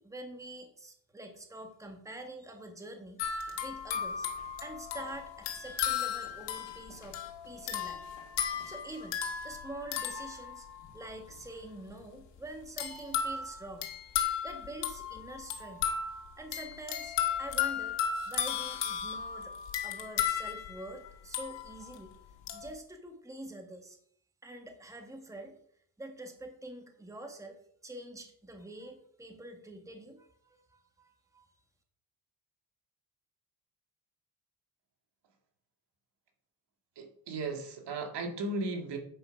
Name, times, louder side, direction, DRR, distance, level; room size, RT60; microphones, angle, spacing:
voice 1, 0.0-3.2 3.6-4.3 4.6-7.2 7.4-8.0 8.6-9.2 9.4-10.7 10.9-15.9 16.4-18.0 18.3-19.5 19.8-22.1 22.5-24.0 24.4-25.5 26.0-31.5, right 1 dB, 5° right, 4 dB, 1.4 m, -46 dB
sound 1, 3.2-11.1 12.8-22.0 22.5-22.7, left 8 dB, 80° left, 1.7 m, -35 dB
voice 2, 37.0-39.0, right 2 dB, 70° right, 3 dB, 2.1 m, -36 dB
8.8 x 5.0 x 5.8 m, 0.65 s
cardioid pair, 95°, 42 cm